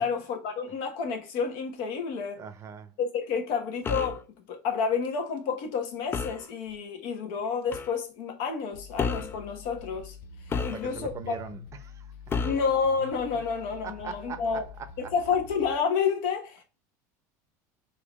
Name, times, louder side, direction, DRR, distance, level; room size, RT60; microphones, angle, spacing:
voice 1, 0.0-2.4 3.0-4.2 4.5-10.2 10.6-11.4 12.4-14.7 15.1-16.6, left 6 dB, 70° left, 1.2 m, -29 dB
voice 2, 2.4-2.9 10.6-12.1 12.4-12.5 13.8-15.1, right 7 dB, 35° right, 0.7 m, -41 dB
sound 1, 3.8-4.2 6.1-6.5 7.7-7.9 9.0-9.4 10.5-11.2 12.3-12.7, left 5 dB, 25° left, 0.4 m, -31 dB
sound 2, 8.7-15.7, left 6 dB, 85° left, 0.6 m, -46 dB
3.9 x 2.7 x 3.0 m
supercardioid pair, 115°, 9 cm